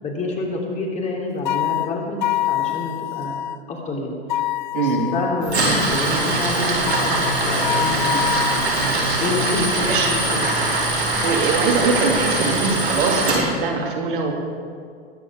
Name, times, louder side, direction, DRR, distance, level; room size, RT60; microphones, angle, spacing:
voice 1, 0.0-4.1 4.7-8.3 9.2-10.5, left 2 dB, 20° left, -2 dB, 3.1 m, -28 dB
sound 1, 1.5-3.6 4.3-5.6 6.9-9.0, left 13 dB, 45° left, 0.5 m, -26 dB
voice 2, 4.7-5.1 9.0-9.2 9.9-10.1 10.9-14.3, right 4 dB, 55° right, -1 dB, 2.9 m, -23 dB
Tools, 5.4-13.4, right 2 dB, 80° right, 4.5 m, -22 dB
22.5 x 9.8 x 4.9 m, 2.2 s
figure-of-eight pair, 105°, 32 cm